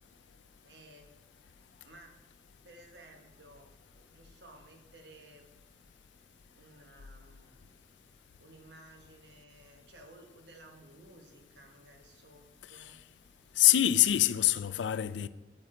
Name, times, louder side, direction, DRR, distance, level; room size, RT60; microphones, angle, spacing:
voice 1, 0.6-1.2 1.8-2.2 2.6-5.5 6.5-7.8 8.4-13.0, right 1 dB, 75° right, 1.1 m, -56 dB
voice 2, 13.6-15.3, left 13 dB, 90° left, 0.4 m, -25 dB
8.7 x 8.5 x 3.8 m
head